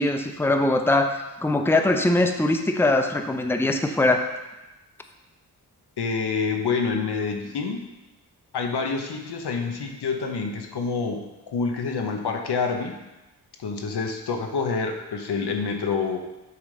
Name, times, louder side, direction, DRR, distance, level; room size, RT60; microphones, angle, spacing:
voice 1, 0.0-4.2, left 2 dB, 5° left, 5 dB, 0.6 m, -22 dB
voice 2, 6.0-7.8 8.5-13.0 13.6-16.2, left 5 dB, 80° left, 3 dB, 0.9 m, -27 dB
7.0 x 4.0 x 4.9 m, 1.0 s
cardioid pair, 55°, 39 cm